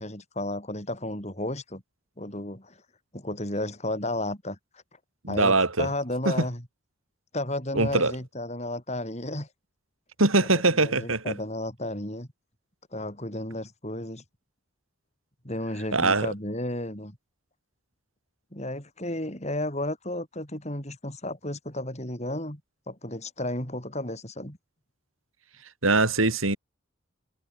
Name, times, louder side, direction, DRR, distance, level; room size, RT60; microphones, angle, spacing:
voice 1, 0.0-1.8 2.2-2.8 3.1-4.8 5.3-6.6 7.3-9.5 10.5-12.3 12.9-14.2 15.4-17.2 18.5-22.6 22.9-24.6, left 1 dB, 35° left, 5.6 m, -33 dB
voice 2, 5.2-5.9 6.2-6.3 7.8-8.1 10.2-11.3 15.9-16.3 25.8-26.6, right 3 dB, 90° right, 4.3 m, -22 dB
head